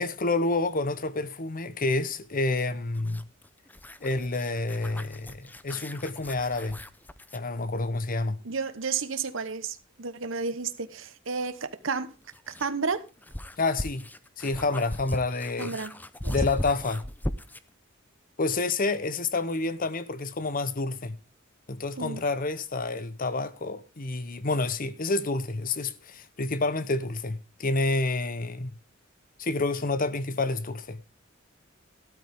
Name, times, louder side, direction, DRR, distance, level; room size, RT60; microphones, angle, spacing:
voice 1, 0.0-3.2 4.0-6.8 7.3-8.4 13.6-14.1 14.4-15.8 16.3-17.0 18.4-21.2 21.7-28.7 29.4-31.0, left 3 dB, 45° left, 0.9 m, -29 dB
sound 1, 2.9-7.5 9.8-9.9 11.9-17.7, left 1 dB, 10° left, 0.6 m, -37 dB
voice 2, 8.4-12.1 12.5-13.0 15.6-15.9 16.2-16.3 22.0-22.2, right 5 dB, 65° right, 1.1 m, -32 dB
12.5 x 12.5 x 3.6 m
head